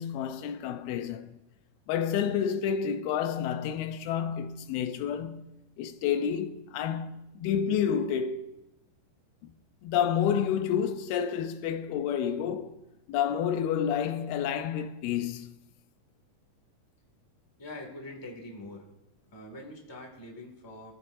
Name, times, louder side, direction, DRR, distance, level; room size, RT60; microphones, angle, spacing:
voice 1, 0.0-1.4 1.9-5.5 5.8-8.5 9.4-9.5 9.8-12.7 13.1-15.6, left 8 dB, 90° left, 2.7 m, -29 dB
voice 2, 17.6-18.9 19.3-20.9, left 1 dB, 10° left, 1.6 m, -44 dB
24.0 x 14.5 x 2.7 m
omnidirectional pair, 4.3 m